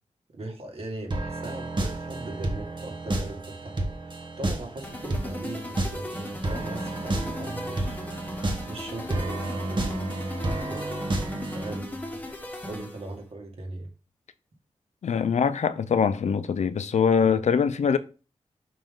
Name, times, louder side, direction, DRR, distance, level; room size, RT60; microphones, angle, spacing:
voice 1, 0.3-8.0 8.7-10.2 10.6-10.9 11.5-12.2 12.6-13.9 17.2-17.4, right 2 dB, 60° right, 2.0 m, -39 dB
sound 1, 1.1-11.8, right 2 dB, 40° right, 1.2 m, -31 dB
sound 2, 4.8-13.2, left 1 dB, 15° left, 1.2 m, -37 dB
voice 2, 15.0-18.0, left 6 dB, 80° left, 0.5 m, -23 dB
5.8 x 5.2 x 3.8 m
wide cardioid pair, 145°, 12 cm